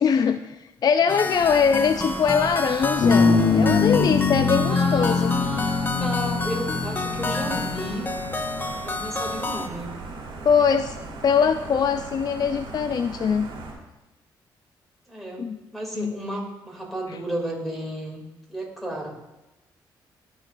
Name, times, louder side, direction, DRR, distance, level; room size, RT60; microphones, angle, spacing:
voice 1, 0.0-5.4 10.5-11.0 11.2-13.5 15.4-15.6 16.0-16.1 17.1-17.2, left 6 dB, 50° left, 10 dB, 0.3 m, -22 dB
sound 1, 1.1-9.7, left 2 dB, 20° left, 0.7 m, -30 dB
sound 2, 1.3-13.7, right 3 dB, 70° right, 2.5 m, -38 dB
sound 3, 3.0-8.8, left 4 dB, 65° left, 0.9 m, -23 dB
voice 2, 4.7-8.1 8.8-9.9 15.1-18.2 18.5-19.3, right 1 dB, ahead, -1 dB, 2.6 m, -33 dB
12.5 x 4.9 x 2.6 m, 1.0 s
supercardioid pair, 60°, 9 cm